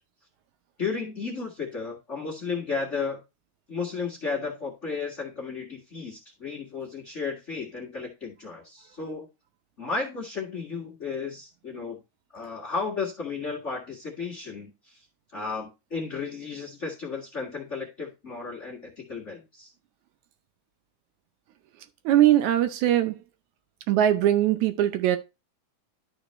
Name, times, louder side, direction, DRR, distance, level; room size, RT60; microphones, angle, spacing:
voice 1, 0.8-3.2 3.7-9.3 9.8-12.0 12.3-15.0 15.3-19.7, left 4 dB, 30° left, 1.4 m, -33 dB
voice 2, 22.1-23.2 23.9-25.2, right 12 dB, 75° right, 1.9 m, -21 dB
12.0 x 4.4 x 3.1 m
omnidirectional pair, 3.6 m